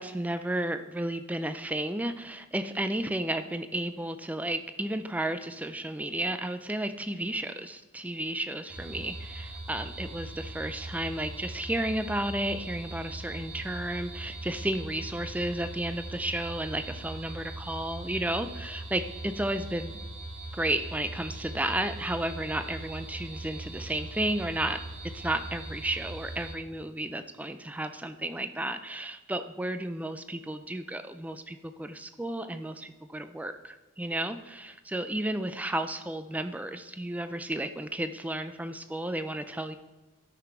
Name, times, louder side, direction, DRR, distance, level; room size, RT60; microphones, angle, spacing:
voice 1, 0.0-20.0 20.5-24.8 25.1-39.8, right 1 dB, 5° right, 9 dB, 0.3 m, -33 dB
sound 1, 8.7-26.5, right 2 dB, 85° right, 1.5 m, -41 dB
13.0 x 6.0 x 4.4 m, 1.2 s
head